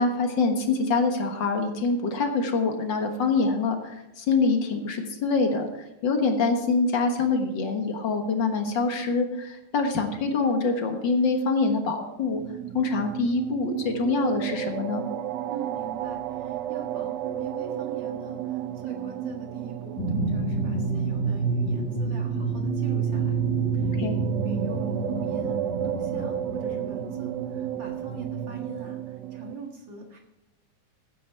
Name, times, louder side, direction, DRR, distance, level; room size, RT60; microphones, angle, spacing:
voice 1, 0.0-5.7 6.0-12.4 12.7-15.0 24.0-24.2, left 4 dB, 50° left, 4 dB, 1.5 m, -25 dB
sound 1, 12.2-29.5, right 11 dB, 85° right, 1.4 m, -33 dB
voice 2, 15.5-23.4 24.4-29.0 29.3-30.2, right 3 dB, 45° right, 1 dB, 2.0 m, -42 dB
sound 2, 20.0-28.4, right 4 dB, 30° left, 1.4 m, -29 dB
14.0 x 9.4 x 4.5 m, 0.92 s
omnidirectional pair, 3.6 m